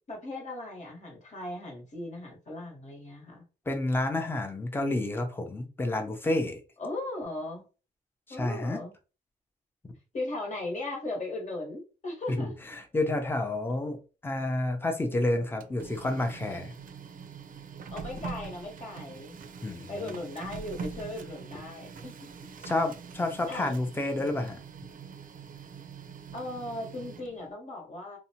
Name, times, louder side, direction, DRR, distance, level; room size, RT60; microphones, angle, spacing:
voice 1, 0.1-3.4 6.8-7.7 8.3-8.9 10.1-12.5 17.9-19.4 19.9-22.3 23.5-23.7 26.3-28.2, left 2 dB, 50° left, 1.1 m, -37 dB
voice 2, 3.7-6.6 8.3-8.8 9.8-9.9 12.3-16.7 19.6-20.2 22.6-24.6, left 2 dB, 15° left, 0.5 m, -30 dB
Printer, 15.4-27.5, right 5 dB, 60° right, 0.4 m, -44 dB
2.7 x 2.1 x 2.8 m
wide cardioid pair, 115°, 16 cm